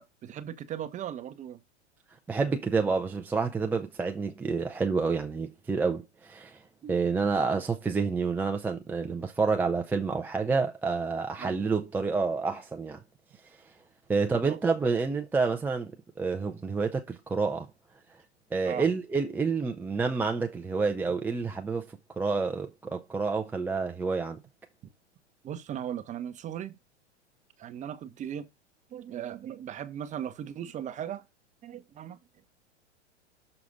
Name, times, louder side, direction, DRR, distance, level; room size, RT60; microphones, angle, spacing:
voice 1, 0.0-1.6 6.8-7.0 11.4-11.6 14.1-14.6 18.6-18.9 25.4-26.8 27.6-28.5 28.9-31.2 31.6-32.2, right 9 dB, 20° right, 0.8 m, -38 dB
voice 2, 2.3-6.6 6.9-13.0 14.1-15.9 16.2-17.7 18.5-24.4, right 4 dB, 5° right, 0.4 m, -28 dB
6.5 x 5.8 x 3.9 m
hypercardioid pair, 110°, 35 cm